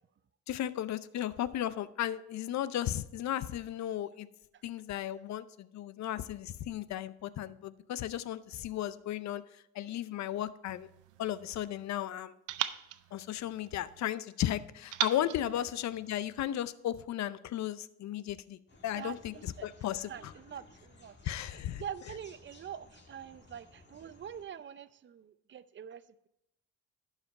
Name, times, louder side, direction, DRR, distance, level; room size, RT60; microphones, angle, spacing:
voice 1, 0.5-4.3 4.6-10.9 11.2-12.3 13.1-20.3 21.2-21.8, left 12 dB, 65° left, 16 dB, 0.6 m, -35 dB
sound 1, 10.7-11.9 12.5-14.1 14.9-16.5, right 13 dB, 90° right, 0.6 m, -40 dB
sound 2, 18.7-24.4, left 2 dB, 35° left, 1.7 m, -58 dB
voice 2, 18.9-26.3, right 8 dB, 40° right, 15 dB, 0.5 m, -45 dB
11.5 x 4.9 x 4.5 m, 0.83 s
cardioid pair, 90°, 30 cm